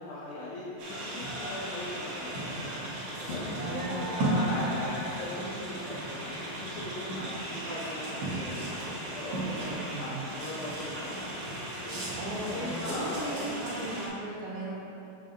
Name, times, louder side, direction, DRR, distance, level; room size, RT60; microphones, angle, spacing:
voice 1, 0.1-2.8 3.2-4.9 5.2-11.2 11.8-12.1 12.4-13.5, left 2 dB, 75° left, -10 dB, 2.6 m, -39 dB
sound 1, 0.8-14.1, right 1 dB, 55° right, 2.2 m, -35 dB
voice 2, 3.6-4.4 9.9-10.3 12.2-14.7, right 2 dB, 80° right, -7 dB, 3.2 m, -37 dB
8.7 x 6.3 x 2.6 m, 2.8 s
omnidirectional pair, 3.6 m